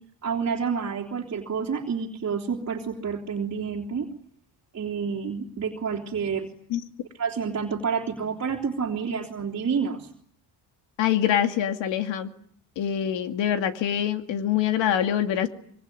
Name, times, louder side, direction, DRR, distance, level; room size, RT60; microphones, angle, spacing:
voice 1, 0.2-4.0 4.7-6.5 7.2-10.1, right 6 dB, 35° right, 0 dB, 3.1 m, -29 dB
voice 2, 11.0-12.3 12.8-15.5, left 10 dB, 85° left, 7 dB, 2.5 m, -24 dB
25.5 x 24.5 x 9.3 m, 0.63 s
cardioid pair, 155°, 44 cm